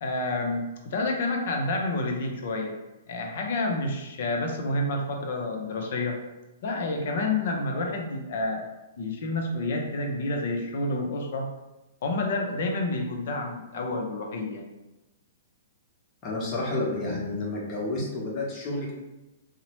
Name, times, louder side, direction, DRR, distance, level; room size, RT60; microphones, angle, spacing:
voice 1, 0.0-2.7 3.1-6.2 6.6-8.6 9.0-11.5 12.0-14.6 17.0-17.2 18.0-18.1, left 2 dB, 60° left, 2 dB, 0.6 m, -29 dB
voice 2, 16.2-18.9, left 2 dB, 30° left, -3 dB, 0.9 m, -30 dB
2.8 x 2.1 x 2.9 m, 1.0 s
hypercardioid pair, 120°, 0 cm